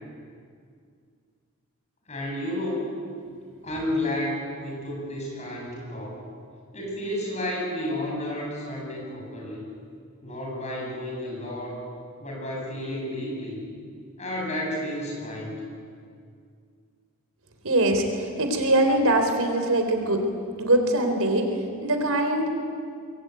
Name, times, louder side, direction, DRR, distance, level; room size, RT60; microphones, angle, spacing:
voice 1, 2.1-2.9 3.6-6.3 6.7-9.7 10.2-11.8 12.2-13.6 14.2-15.5, left 1 dB, 30° left, -1 dB, 7.4 m, -31 dB
voice 2, 17.6-20.3 20.6-22.5, right 1 dB, 75° right, 5 dB, 3.9 m, -23 dB
24.5 x 22.5 x 9.3 m, 2.2 s
head